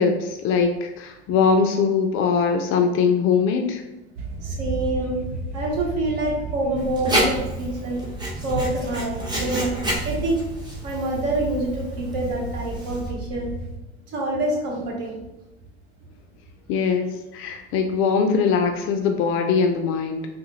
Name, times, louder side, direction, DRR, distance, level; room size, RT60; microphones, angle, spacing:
voice 1, 0.0-3.8 16.7-20.3, left 5 dB, 40° left, 5 dB, 0.4 m, -21 dB
sound 1, 4.1-13.8, right 3 dB, 75° right, 0.9 m, -33 dB
voice 2, 4.4-5.2 5.5-8.0 8.4-9.8 10.0-10.4 10.8-13.5 14.1-15.2, right 1 dB, 50° right, -1 dB, 1.0 m, -26 dB
Writing, 6.8-13.1, right 1 dB, 15° right, 0.9 m, -30 dB
3.6 x 2.1 x 2.8 m, 0.98 s
hypercardioid pair, 75°, 32 cm